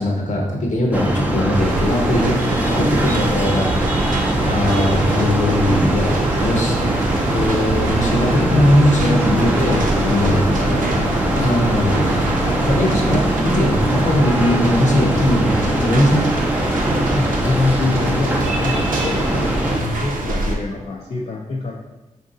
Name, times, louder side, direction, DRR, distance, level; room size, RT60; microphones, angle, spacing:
voice 1, 0.0-2.3 2.6-3.7 4.4-9.8 10.1-10.4 11.3-11.9 12.2-16.2, left 1 dB, 65° left, 0 dB, 0.9 m, -20 dB
sound 1, 0.9-19.8, right 1 dB, 10° right, 0.6 m, -21 dB
sound 2, 1.5-20.6, right 2 dB, 85° right, 0.7 m, -26 dB
sound 3, 5.5-14.7, right 4 dB, 50° right, 0.4 m, -31 dB
voice 2, 9.6-12.4 17.0-21.7, left 3 dB, 50° left, -2 dB, 0.5 m, -26 dB
4.5 x 2.7 x 3.7 m, 1.0 s
wide cardioid pair, 90°, 14 cm